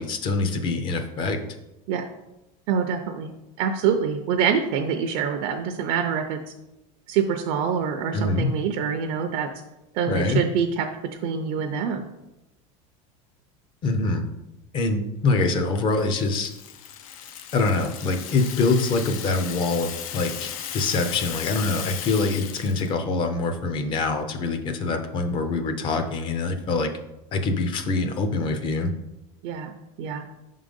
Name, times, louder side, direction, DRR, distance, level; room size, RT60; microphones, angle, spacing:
voice 1, 0.0-1.4 8.1-8.5 10.1-10.4 13.8-14.2 14.7-16.5 17.5-26.9 27.3-28.9, left 3 dB, 30° left, 7 dB, 0.5 m, -24 dB
voice 2, 2.7-3.3 3.6-6.4 7.1-9.5 9.9-10.9 11.2-12.1 29.4-30.2, right 7 dB, 50° right, 6 dB, 0.5 m, -25 dB
Rattle (instrument), 16.0-22.9, left 9 dB, 85° left, 0.6 m, -36 dB
5.5 x 3.7 x 5.2 m, 0.94 s
cardioid pair, 170°, 18 cm